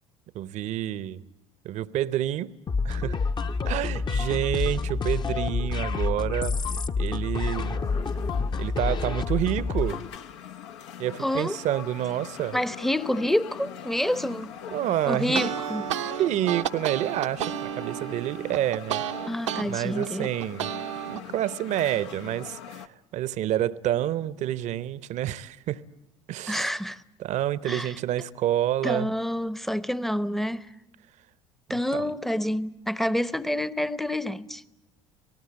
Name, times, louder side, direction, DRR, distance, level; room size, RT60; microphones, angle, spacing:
voice 1, 0.3-1.2 1.6-2.5 2.8-3.2 3.7-6.6 7.0-7.8 8.6-10.0 11.0-12.6 14.7-15.5 16.1-19.0 19.6-20.7 21.1-25.8 26.3-26.7 27.2-29.1 31.9-32.1, right 12 dB, 50° right, 0.8 m, -28 dB
sound 1, 2.7-10.1, left 4 dB, 30° left, 0.9 m, -28 dB
sound 2, 7.3-22.9, left 9 dB, 70° left, 0.9 m, -42 dB
voice 2, 11.2-11.6 12.5-14.5 15.1-15.9 19.3-20.3 26.5-27.0 27.7-27.9 28.8-30.7 31.7-34.6, left 1 dB, ahead, 0.8 m, -28 dB
sound 3, 15.1-19.6 20.0-21.2, right 10 dB, 75° right, 0.9 m, -31 dB
28.5 x 19.0 x 8.6 m
figure-of-eight pair, 60°, 16 cm